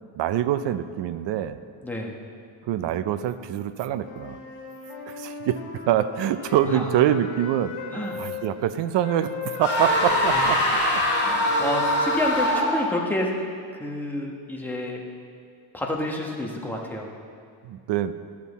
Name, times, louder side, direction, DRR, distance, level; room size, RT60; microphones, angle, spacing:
voice 1, 0.2-1.6 2.6-4.4 5.1-7.8 8.2-10.6 11.2-11.4 17.6-18.1, right 11 dB, 60° right, 13 dB, 0.5 m, -25 dB
voice 2, 1.8-2.1 6.7-6.8 7.9-8.2 10.3-10.5 11.2-13.4 13.7-15.0 15.7-17.1, left 1 dB, 5° left, -1 dB, 1.1 m, -29 dB
Wind instrument woodwind instrument, 3.9-8.3 9.0-12.7, left 3 dB, 85° left, 1.8 m, -37 dB
sound 1, 9.6-13.0, left 1 dB, 20° left, 2.0 m, -23 dB
12.0 x 7.4 x 4.1 m, 2.2 s
cardioid pair, 140°, 48 cm